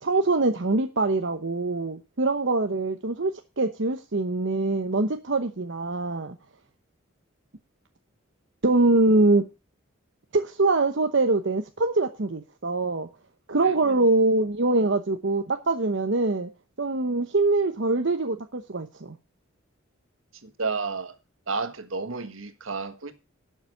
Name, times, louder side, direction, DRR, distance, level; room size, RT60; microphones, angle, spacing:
voice 1, 0.0-6.4 8.6-9.4 10.3-13.1 13.5-16.5 16.8-19.2, right 2 dB, 60° right, 0.9 m, -24 dB
voice 2, 20.4-21.2 21.5-23.1, right 4 dB, 75° right, 1.6 m, -31 dB
11.5 x 7.2 x 6.7 m
head